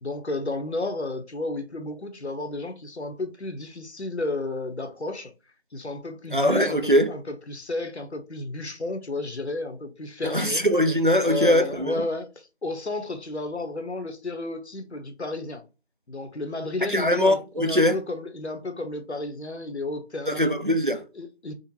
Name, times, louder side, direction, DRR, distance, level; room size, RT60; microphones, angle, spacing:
voice 1, 0.0-5.3 5.7-10.6 11.2-15.6 16.1-20.6 21.1-21.5, left 2 dB, 80° left, 0.8 m, -32 dB
voice 2, 6.3-7.1 10.2-11.9 16.9-18.0 20.3-21.0, equal, 50° right, 0.5 m, -21 dB
3.8 x 2.1 x 2.7 m
figure-of-eight pair, 180°, 33 cm